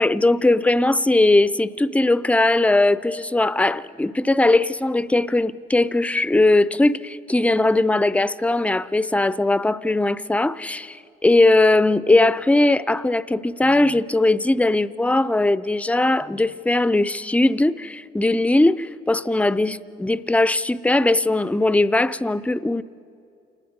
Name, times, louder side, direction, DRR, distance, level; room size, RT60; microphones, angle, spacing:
voice 1, 0.0-11.0 11.2-22.8, left 2 dB, 5° left, 0.5 m, -19 dB
28.0 x 19.5 x 5.3 m
cardioid pair, 90°, 20 cm